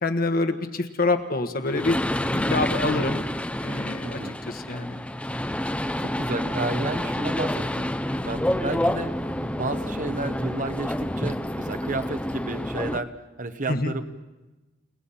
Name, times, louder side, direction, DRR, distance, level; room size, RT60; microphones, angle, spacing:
voice 1, 0.0-2.0 2.3-3.2 3.6-4.2 4.5-5.0 13.7-14.0, left 2 dB, 50° left, 6 dB, 1.4 m, -26 dB
sound 1, 1.7-13.0, left 1 dB, 5° left, 0.7 m, -28 dB
voice 2, 4.0-4.4 6.0-7.9 8.2-14.0, right 2 dB, 45° right, 9 dB, 1.0 m, -32 dB
29.5 x 18.5 x 5.7 m, 1.1 s
head